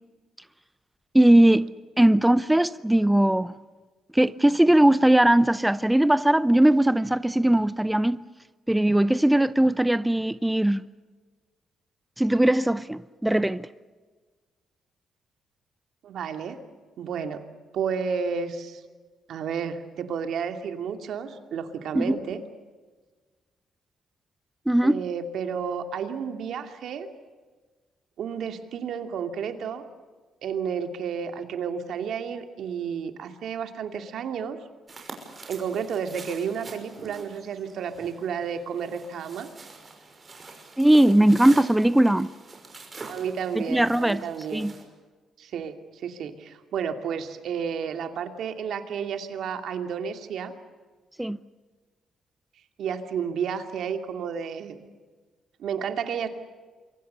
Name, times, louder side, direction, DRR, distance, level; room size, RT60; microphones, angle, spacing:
voice 1, 1.1-1.7 2.0-3.5 4.1-8.2 8.7-10.8 12.2-13.7 21.9-22.2 24.7-25.0 40.8-42.3 43.6-44.2 44.5-44.7 51.2-51.4, right 1 dB, 5° right, 0.7 m, -19 dB
voice 2, 16.0-16.6 17.0-17.4 17.7-18.8 19.3-22.4 24.8-27.1 28.2-29.8 30.4-34.6 35.0-35.1 35.5-39.5 43.1-44.7 45.4-50.5 52.8-54.8 55.6-56.3, right 7 dB, 70° right, 2.6 m, -31 dB
sound 1, 34.9-44.8, right 3 dB, 30° right, 6.0 m, -45 dB
28.5 x 23.5 x 6.9 m
cardioid pair, 90°, 0 cm